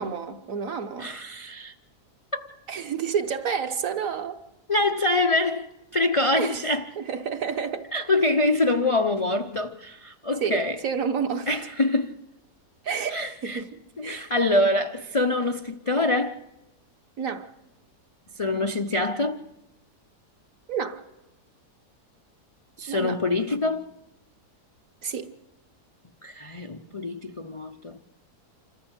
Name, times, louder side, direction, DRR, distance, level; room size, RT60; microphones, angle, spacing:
voice 1, 0.0-1.1 2.7-4.4 6.3-6.7 7.0-7.9 10.4-11.5 12.8-14.3 17.2-17.5 20.7-21.0 22.9-23.2 25.0-25.3, right 6 dB, 55° right, 1.5 m, -30 dB
voice 2, 1.0-1.7 2.3-2.4 4.7-6.8 7.9-10.8 11.5-12.2 13.1-13.6 14.0-16.4 18.4-19.4 22.8-23.9 26.2-28.0, left 2 dB, 60° left, 0.3 m, -25 dB
27.0 x 13.5 x 8.1 m
omnidirectional pair, 1.7 m